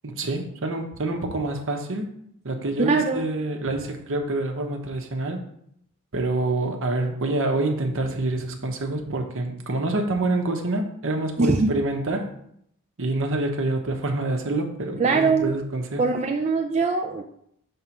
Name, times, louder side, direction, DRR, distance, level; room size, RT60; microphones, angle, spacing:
voice 1, 0.0-2.1 2.4-5.4 6.1-12.3 13.0-16.0, right 2 dB, 60° right, 4 dB, 1.0 m, -26 dB
voice 2, 2.8-3.3 11.4-11.7 15.0-15.5 16.0-17.2, right 4 dB, 30° right, 2 dB, 0.4 m, -22 dB
5.5 x 3.6 x 5.9 m, 0.71 s
head